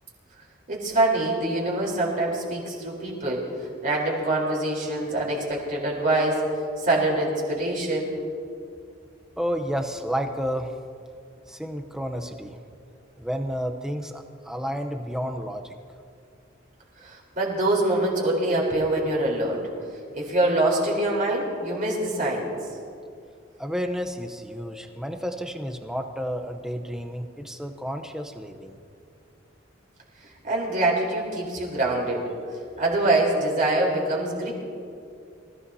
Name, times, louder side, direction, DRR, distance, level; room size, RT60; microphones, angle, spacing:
voice 1, 0.7-3.5 3.8-6.5 6.8-8.1 17.0-19.6 20.1-22.6 30.2-32.2 32.8-34.5, right 2 dB, 45° right, -3 dB, 3.9 m, -24 dB
voice 2, 9.4-10.8 11.5-12.6 13.2-15.8 23.6-28.8, equal, 5° right, 4 dB, 0.8 m, -31 dB
25.0 x 15.5 x 2.8 m, 2.4 s
head